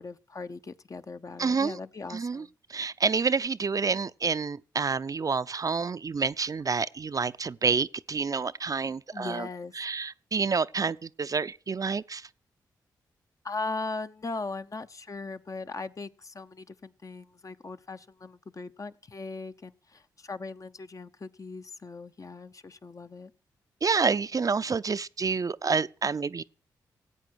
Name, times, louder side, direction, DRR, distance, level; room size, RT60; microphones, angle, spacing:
voice 1, 0.0-2.5 9.1-9.7 13.4-23.3, left 3 dB, 40° left, 0.8 m, -39 dB
voice 2, 1.4-1.8 2.1-9.5 9.8-12.2 23.8-26.4, right 5 dB, 45° right, 0.5 m, -28 dB
16.5 x 8.4 x 6.3 m
supercardioid pair, 45°, 8 cm